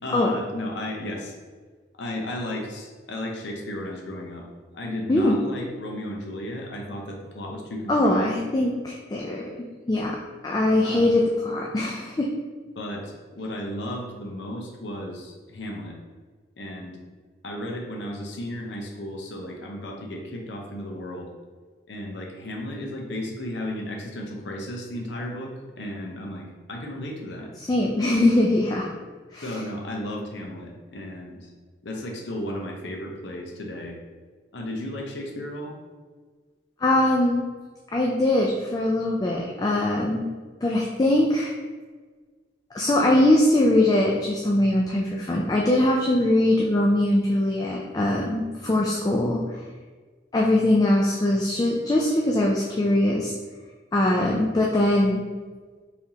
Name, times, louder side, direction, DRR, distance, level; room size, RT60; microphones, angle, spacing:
voice 1, 0.0-1.3 2.0-4.4 4.7-8.3 10.8-11.2 12.8-16.0 16.6-17.0 17.4-21.3 21.9-25.5 25.8-27.5 29.4-31.5 31.8-34.0 34.5-35.7, left 1 dB, 80° left, 0 dB, 0.7 m, -34 dB
voice 2, 7.9-9.5 9.9-10.2 10.4-12.3 27.6-28.9 29.3-29.6 36.8-37.4 37.9-40.3 40.6-41.5 42.7-49.6 50.3-53.3 53.9-55.2, left 1 dB, 20° left, -2 dB, 0.3 m, -22 dB
4.6 x 3.5 x 2.8 m, 1.4 s
head